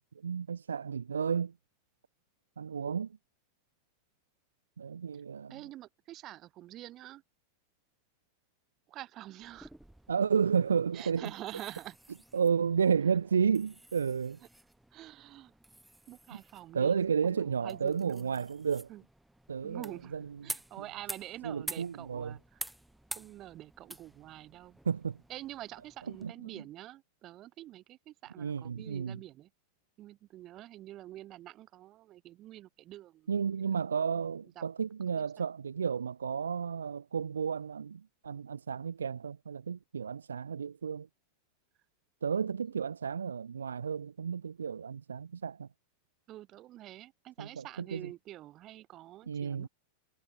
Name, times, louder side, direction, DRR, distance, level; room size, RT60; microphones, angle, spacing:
voice 1, 0.2-1.5 2.6-3.2 4.8-5.6 10.1-11.3 12.3-14.4 16.7-18.9 19.5-20.3 21.4-22.4 24.9-25.2 26.2-26.6 28.4-29.2 33.3-41.1 42.2-45.7 47.4-47.6 47.9-48.1 49.3-49.7, right 6 dB, 70° right, 0.4 m, -32 dB
voice 2, 5.5-7.2 8.9-9.7 10.9-12.0 14.9-15.5 16.1-18.3 18.9-19.0 19.6-22.6 23.2-24.8 25.3-29.5 30.0-33.3 34.6-34.7 46.3-49.7, right 14 dB, 35° right, 2.4 m, -47 dB
sound 1, 9.4-26.3, right 1 dB, 5° right, 7.1 m, -49 dB
figure-of-eight pair, 90°, 0 cm